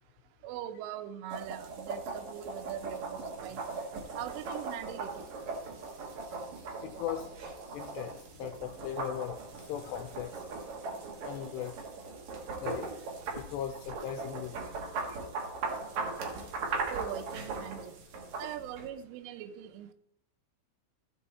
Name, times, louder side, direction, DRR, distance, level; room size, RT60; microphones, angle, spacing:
voice 1, 0.4-3.6 4.2-5.3 16.9-18.0 18.4-19.9, right 11 dB, 85° right, 11 dB, 3.2 m, -41 dB
sound 1, 1.3-18.9, right 4 dB, 70° right, 1.7 m, -39 dB
voice 2, 6.8-7.3 7.7-10.4 11.2-11.7 12.6-12.9 13.3-14.7, left 10 dB, 90° left, 6 dB, 2.5 m, -38 dB
14.0 x 7.1 x 4.2 m, 0.76 s
omnidirectional pair, 5.5 m